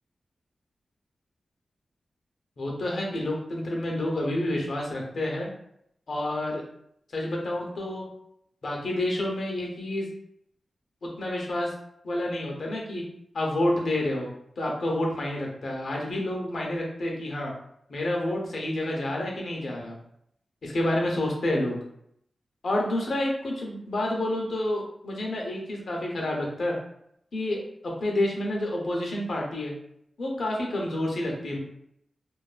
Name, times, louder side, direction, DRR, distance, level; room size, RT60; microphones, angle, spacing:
voice 1, 2.6-5.5 6.1-6.6 7.1-8.0 8.6-10.1 11.2-11.7 12.0-13.0 13.3-14.3 14.6-17.5 17.9-20.0 20.6-21.8 22.6-26.8 27.3-27.6 28.0-29.7 30.2-31.6, left 1 dB, 70° left, -1 dB, 0.7 m, -29 dB
2.5 x 2.3 x 2.4 m, 0.73 s
cardioid pair, 70°, 0 cm